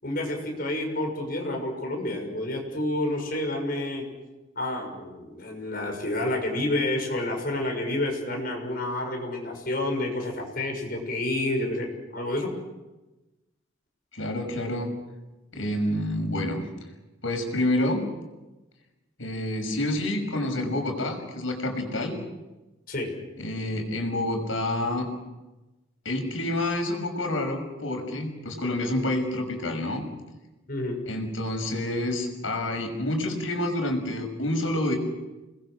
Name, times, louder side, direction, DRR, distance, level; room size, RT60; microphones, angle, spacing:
voice 1, 0.0-4.0 4.5-11.9 12.1-12.5 22.9-23.1 30.7-31.0, left 1 dB, 50° left, 2 dB, 6.5 m, -29 dB
voice 2, 14.1-14.9 15.5-16.7 17.2-18.1 19.2-22.2 23.4-25.1 26.0-30.0 31.1-35.0, left 1 dB, 90° left, 4 dB, 6.1 m, -28 dB
29.0 x 21.5 x 6.6 m, 1.1 s
head